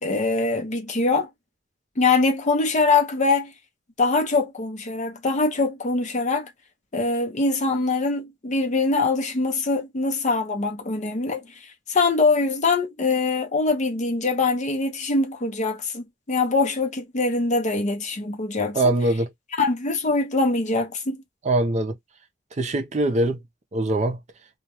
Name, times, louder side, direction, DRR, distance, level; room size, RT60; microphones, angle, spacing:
voice 1, 0.0-1.3 2.0-3.5 4.0-6.5 6.9-11.4 11.9-18.9 19.6-21.2, left 3 dB, 40° left, 0.6 m, -23 dB
voice 2, 18.8-19.3 21.4-22.0 22.6-23.4 23.7-24.2, right 2 dB, 40° right, 0.5 m, -22 dB
2.3 x 2.1 x 2.8 m
head